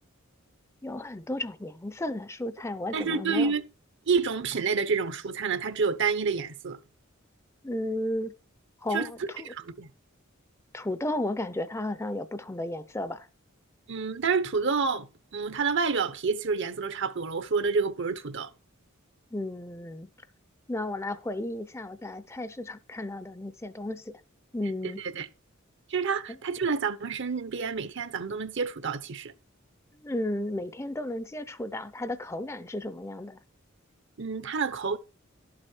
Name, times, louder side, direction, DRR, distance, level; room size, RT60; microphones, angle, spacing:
voice 1, 0.8-3.5 7.6-8.3 8.8-9.5 10.7-13.3 19.3-20.1 20.7-24.2 24.5-25.0 29.9-33.4, left 1 dB, 15° left, 0.6 m, -33 dB
voice 2, 2.9-3.6 4.1-6.8 8.9-9.1 9.5-9.9 13.9-15.1 15.3-18.5 25.1-25.3 25.9-29.3 34.2-35.0, right 5 dB, 60° right, 0.9 m, -28 dB
12.5 x 7.7 x 4.5 m
head